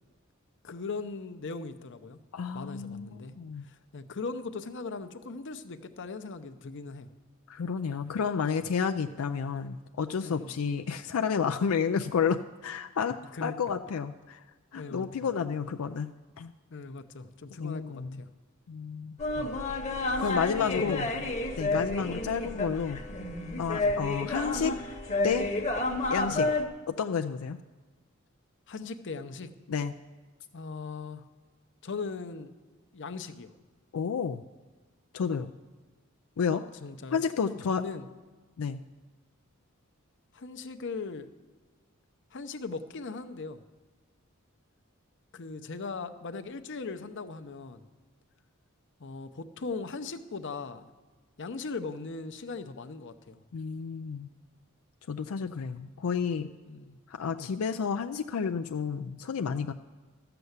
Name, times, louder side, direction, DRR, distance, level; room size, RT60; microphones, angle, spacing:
voice 1, 0.6-2.2 2.5-3.4 3.6-7.1 10.2-10.6 13.3-13.6 14.7-15.3 16.7-18.3 19.3-19.6 20.1-20.2 20.6-21.3 21.7-21.9 23.8-24.0 26.3-26.5 28.7-29.5 30.5-31.2 31.8-32.5 32.9-33.5 36.5-37.2 37.7-38.1 40.3-41.3 42.3-43.6 45.3-47.8 49.0-50.9 51.4-53.4 55.4-55.6 56.7-57.0, left 4 dB, 60° left, 10 dB, 0.7 m, -39 dB
voice 2, 2.3-3.7 7.5-14.4 14.7-16.1 16.4-16.5 17.6-18.2 18.7-19.2 20.2-21.1 21.6-23.0 23.6-24.8 25.2-25.5 26.1-26.5 26.9-27.6 29.7-29.9 33.9-34.4 35.1-35.5 36.4-36.6 37.1-37.8 38.6-38.8 53.5-54.3 55.1-56.5 57.1-59.7, left 6 dB, 85° left, 7 dB, 0.4 m, -31 dB
sound 1, 19.2-26.6, left 2 dB, 35° left, 1.1 m, -30 dB
13.5 x 6.9 x 8.0 m, 1.3 s
head